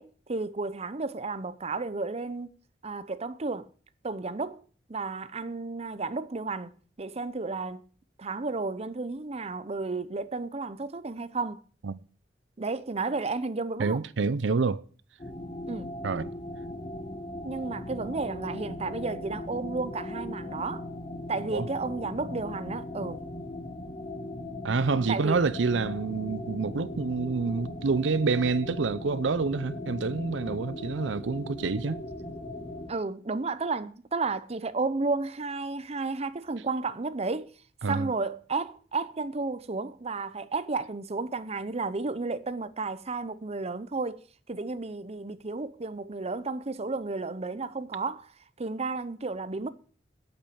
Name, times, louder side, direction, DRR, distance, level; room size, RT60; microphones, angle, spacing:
voice 1, 0.0-2.5 2.8-3.7 4.0-4.6 4.9-7.8 8.2-11.6 12.6-14.0 15.7-15.9 17.4-20.8 21.3-23.2 25.1-25.4 32.9-37.5 37.9-49.7, right 3 dB, 35° right, 0.7 m, -32 dB
voice 2, 13.8-14.8 16.0-16.3 21.5-21.7 24.6-32.0 37.8-38.1, right 4 dB, 85° right, 0.6 m, -27 dB
sound 1, 15.2-32.9, left 1 dB, 30° left, 1.2 m, -38 dB
8.7 x 8.4 x 8.7 m
head